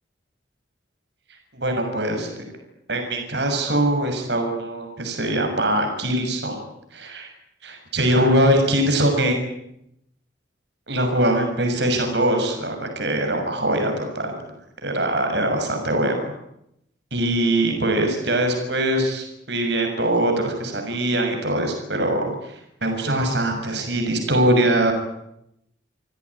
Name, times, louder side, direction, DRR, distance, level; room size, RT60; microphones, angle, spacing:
voice 1, 1.5-2.4 2.9-6.6 6.9-7.3 7.6-9.4 10.9-14.3 14.8-16.1 17.1-24.9, right 1 dB, 60° right, 4 dB, 6.6 m, -22 dB
28.5 x 17.0 x 9.8 m, 0.79 s
head